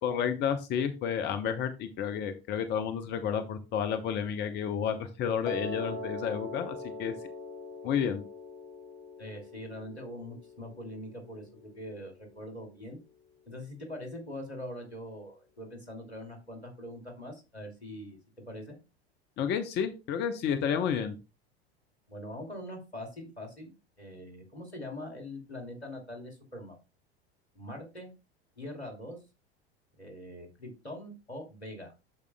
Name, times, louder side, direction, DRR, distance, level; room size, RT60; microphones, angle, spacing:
voice 1, 0.0-7.1 7.8-8.2 19.4-21.2, left 8 dB, 35° left, 8 dB, 0.9 m, -31 dB
Piano, 5.4-11.6, left 1 dB, 60° left, 2.5 m, -42 dB
voice 2, 9.2-13.0 13.5-18.2 18.4-18.8 22.1-23.7 24.0-26.8 27.5-28.1 28.6-29.2 30.0-31.9, left 1 dB, 85° left, 2 dB, 2.6 m, -43 dB
13.0 x 5.1 x 2.2 m, 0.29 s
figure-of-eight pair, 80°, 32 cm